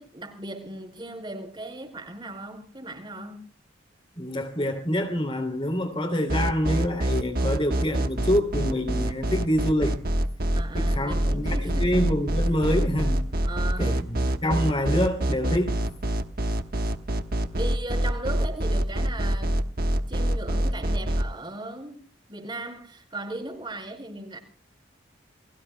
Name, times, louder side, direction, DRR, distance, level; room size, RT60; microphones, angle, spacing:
voice 1, 0.0-3.4 10.5-11.9 13.4-14.0 17.5-19.6 20.1-22.0 22.3-24.4, right 2 dB, 25° right, 5.1 m, -37 dB
voice 2, 4.2-10.0 10.7-13.2 13.8-15.9, equal, 30° left, 2.7 m, -26 dB
sound 1, 6.3-21.2, right 1 dB, 50° right, 1.3 m, -25 dB
29.0 x 22.5 x 2.2 m
head